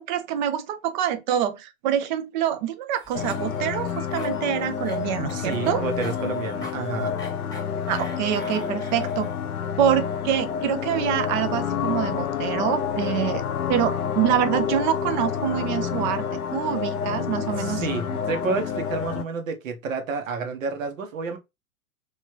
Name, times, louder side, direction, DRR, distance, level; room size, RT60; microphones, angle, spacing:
voice 1, 0.1-5.8 7.9-9.3 9.8-17.8, right 10 dB, 35° right, 0.5 m, -26 dB
Cough, 2.9-9.5, left 2 dB, 10° left, 1.1 m, -42 dB
sound 1, 3.1-19.2, left 7 dB, 80° left, 0.6 m, -28 dB
voice 2, 5.3-7.1 17.5-21.4, right 4 dB, 65° right, 1.0 m, -30 dB
3.2 x 3.1 x 2.9 m
figure-of-eight pair, 105°, 43 cm